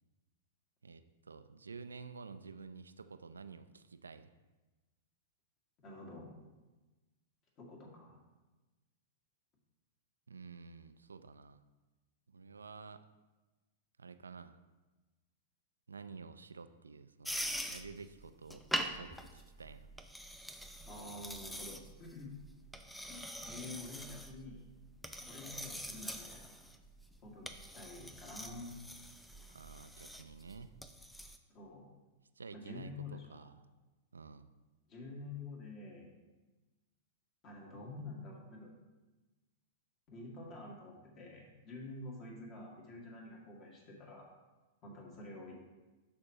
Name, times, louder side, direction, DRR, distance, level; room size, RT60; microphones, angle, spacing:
voice 1, 0.8-4.3 10.3-11.6 12.3-13.0 14.0-14.6 15.9-19.9 29.5-30.7 32.4-33.6 34.1-34.5, right 4 dB, 75° right, 10 dB, 0.3 m, -51 dB
voice 2, 5.8-6.3 7.6-8.2 20.8-22.3 23.1-24.6 25.2-26.5 27.2-27.5 27.7-28.8 31.5-31.9 32.5-33.5 34.9-36.1 37.4-38.7 40.1-44.3 44.8-45.6, left 2 dB, 35° left, -2 dB, 1.9 m, -48 dB
sound 1, 17.2-31.4, equal, 5° left, 0.5 m, -44 dB
12.5 x 4.3 x 2.9 m, 1.2 s
figure-of-eight pair, 100°, 0 cm